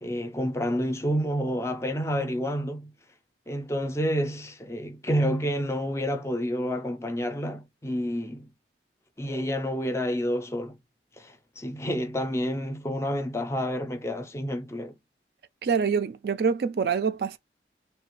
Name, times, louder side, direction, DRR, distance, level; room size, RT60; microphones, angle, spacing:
voice 1, 0.0-2.9 3.5-8.5 9.2-10.8 11.2-14.9, equal, 15° left, 0.4 m, -29 dB
voice 2, 15.6-17.4, right 6 dB, 60° right, 0.3 m, -25 dB
3.2 x 2.3 x 3.0 m
head